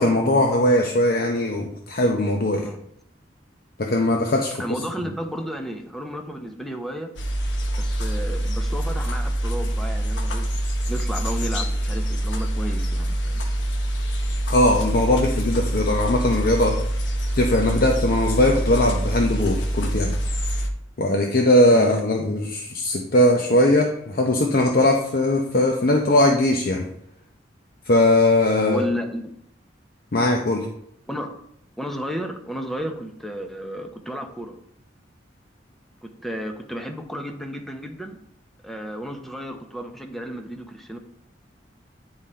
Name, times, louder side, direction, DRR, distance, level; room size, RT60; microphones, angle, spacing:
voice 1, 0.0-2.7 3.8-4.6 5.0-5.1 14.5-16.8 17.4-20.1 21.0-26.9 27.9-28.8 30.1-30.7, left 1 dB, 55° left, 1 dB, 0.7 m, -20 dB
voice 2, 4.6-7.1 7.8-10.5 10.9-13.4 21.7-21.9 28.7-29.3 31.1-31.4 31.8-34.6 36.0-38.2 38.6-41.0, equal, ahead, 4 dB, 0.8 m, -32 dB
sound 1, 7.2-20.7, right 1 dB, 75° left, 0.9 m, -25 dB
9.7 x 3.8 x 4.3 m, 0.70 s
head